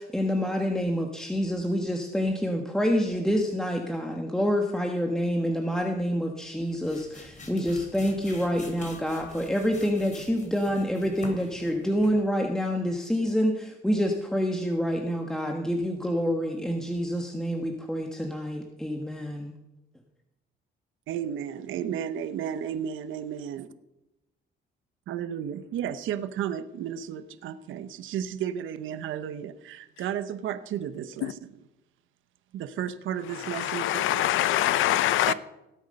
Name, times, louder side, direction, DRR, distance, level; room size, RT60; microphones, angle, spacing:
voice 1, 0.0-19.5, equal, 5° left, 1.5 m, -27 dB
sound 1, 6.5-12.3, left 2 dB, 40° left, 3.6 m, -46 dB
voice 2, 21.1-23.7 25.1-31.5 32.5-34.2 35.3-35.4, right 9 dB, 80° right, 0.9 m, -33 dB
voice 3, 33.4-35.3, left 14 dB, 80° left, 0.7 m, -24 dB
18.0 x 8.2 x 5.4 m
cardioid pair, 90°, 20 cm